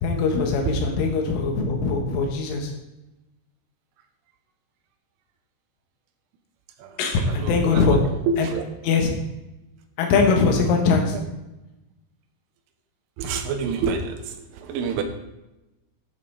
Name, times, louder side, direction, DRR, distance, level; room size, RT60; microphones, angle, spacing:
voice 1, 0.0-2.7 7.0-8.0 8.4-8.5 8.8-9.1 10.0-11.2, left 4 dB, 85° left, 2 dB, 4.0 m, -21 dB
voice 2, 7.2-8.7 13.2-15.0, right 5 dB, 85° right, 5 dB, 3.6 m, -28 dB
12.5 x 7.7 x 4.1 m, 0.97 s
omnidirectional pair, 5.6 m